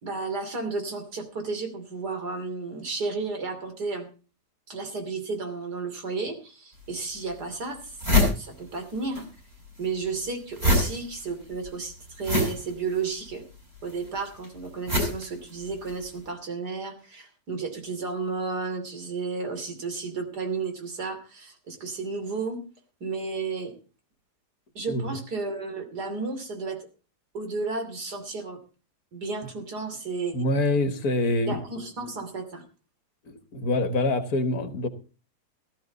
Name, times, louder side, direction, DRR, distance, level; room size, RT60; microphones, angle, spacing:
voice 1, 0.0-4.1 4.7-8.0 8.3-9.3 9.8-13.4 13.8-22.6 23.0-23.7 24.7-26.9 27.3-28.6 29.1-30.4 31.5-32.6, right 4 dB, 75° right, 6 dB, 3.4 m, -33 dB
sound 1, 6.8-6.9 7.4-7.5 7.7-9.3 9.5-16.1, left 2 dB, 35° right, 7.3 m, -26 dB
voice 2, 30.3-31.6 33.3-34.9, left 2 dB, 65° left, 10 dB, 1.8 m, -25 dB
16.0 x 12.5 x 4.0 m, 0.34 s
omnidirectional pair, 1.7 m